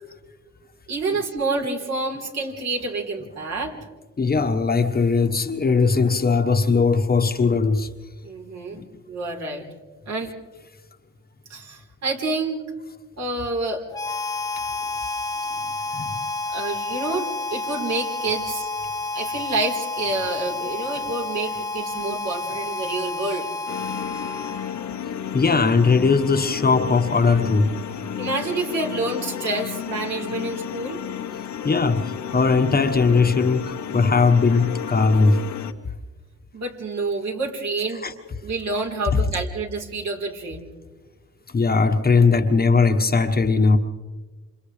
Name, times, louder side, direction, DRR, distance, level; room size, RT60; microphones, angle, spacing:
voice 1, 0.9-3.8 8.2-8.8 9.1-9.6 10.1-10.3 11.5-12.6 13.2-13.8 16.5-18.7 19.1-23.5 28.2-31.0 36.5-38.1 38.4-40.7, right 3 dB, 60° right, 4.2 m, -28 dB
voice 2, 4.2-7.9 8.8-8.9 15.9-16.1 25.3-27.7 31.6-35.4 38.0-38.1 41.5-43.8, left 4 dB, 30° left, 1.4 m, -19 dB
Harmonica, 13.9-25.0, left 3 dB, 15° left, 0.7 m, -30 dB
sound 1, 23.7-35.7, left 9 dB, 70° left, 1.3 m, -32 dB
29.0 x 27.0 x 3.4 m
cardioid pair, 90°, 30 cm